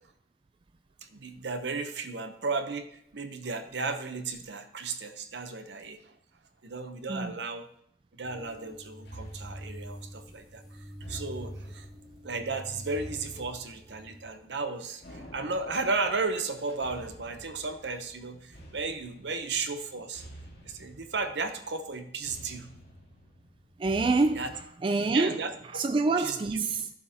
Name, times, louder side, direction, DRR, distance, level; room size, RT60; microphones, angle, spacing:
voice 1, 1.0-6.1 6.6-7.6 8.1-11.9 12.2-20.3 20.6-22.7 24.4-24.5 25.1-25.5 26.2-26.4, right 4 dB, 80° right, 0.8 m, -34 dB
sound 1, 8.2-14.2, equal, 5° right, 2.1 m, -45 dB
sound 2, 9.1-24.7, right 1 dB, 70° left, 1.8 m, -50 dB
voice 2, 23.8-24.5 24.8-26.9, right 3 dB, 30° right, 0.3 m, -27 dB
12.0 x 7.0 x 2.9 m
head